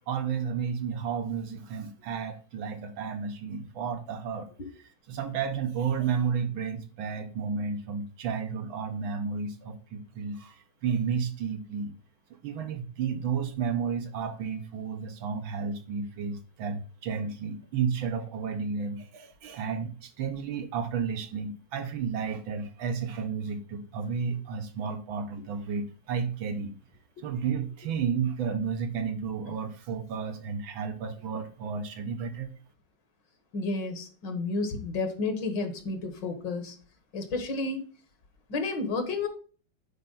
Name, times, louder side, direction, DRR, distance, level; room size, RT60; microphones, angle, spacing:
voice 1, 0.1-4.5 5.1-10.6 10.8-11.9 12.4-26.8 27.2-32.5, right 6 dB, 80° right, 6 dB, 1.8 m, -32 dB
voice 2, 33.5-36.8 37.1-37.8 38.5-39.3, left 3 dB, 65° left, 6 dB, 1.9 m, -31 dB
9.4 x 4.4 x 4.0 m, 0.38 s
omnidirectional pair, 2.1 m